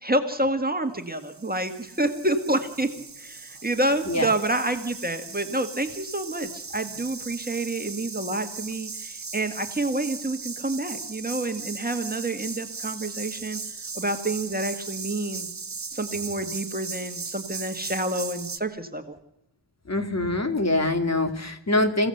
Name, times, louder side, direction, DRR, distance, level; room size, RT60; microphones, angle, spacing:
voice 1, 0.0-2.9 3.2-13.6 13.9-15.5 15.9-19.1, right 1 dB, 20° right, 6 dB, 1.8 m, -28 dB
sound 1, 1.1-18.6, right 4 dB, 35° right, 1.4 m, -38 dB
voice 2, 19.9-22.1, left 2 dB, 35° left, 6 dB, 2.3 m, -24 dB
28.0 x 16.0 x 7.9 m, 0.84 s
wide cardioid pair, 105°, 47 cm